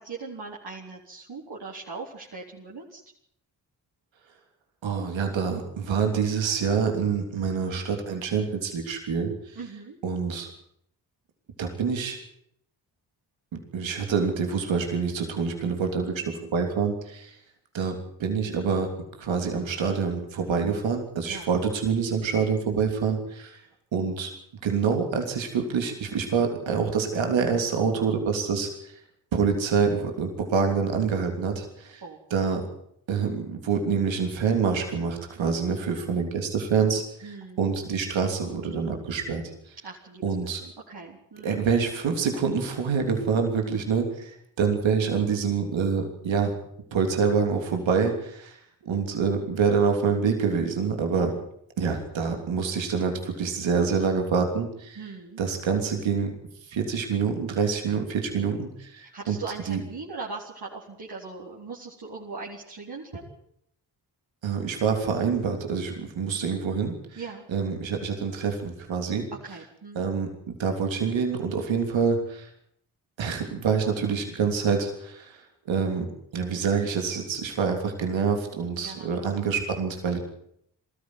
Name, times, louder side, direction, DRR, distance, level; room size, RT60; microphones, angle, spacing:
voice 1, 0.0-3.0 9.5-10.0 21.3-21.6 32.0-32.2 37.2-37.7 39.8-41.6 51.1-51.4 54.9-55.4 59.0-63.3 67.2-67.5 69.4-70.1 78.8-79.4, right 4 dB, 60° right, -4 dB, 4.2 m, -40 dB
voice 2, 4.8-9.6 10.0-10.5 11.6-12.2 13.5-16.2 16.5-17.4 17.7-18.9 19.2-23.5 23.9-24.3 24.6-28.9 29.3-32.0 32.3-32.6 33.1-39.7 40.2-40.6 41.4-46.5 46.9-48.6 48.8-51.3 51.8-55.0 55.4-56.3 56.7-59.4 59.7-59.8 64.4-66.9 67.5-69.3 69.9-72.5 73.2-75.4 75.7-76.0 76.3-80.2, right 5 dB, 80° right, 3 dB, 3.3 m, -26 dB
20.5 x 14.0 x 9.7 m, 0.71 s
supercardioid pair, 40°, 45 cm